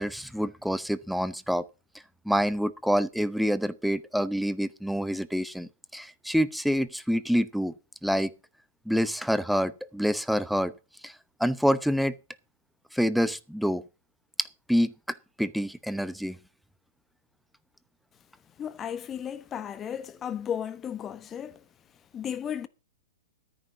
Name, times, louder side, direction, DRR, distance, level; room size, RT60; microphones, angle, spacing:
voice 1, 0.0-1.7 2.3-7.7 8.0-8.3 8.9-10.7 11.0-11.1 11.4-12.2 12.9-13.8 14.7-16.4, equal, ahead, 0.8 m, -27 dB
voice 2, 18.6-21.7 22.1-22.7, left 9 dB, 25° left, 1.1 m, -34 dB
13.5 x 10.0 x 4.0 m
hypercardioid pair, 120°, 0 cm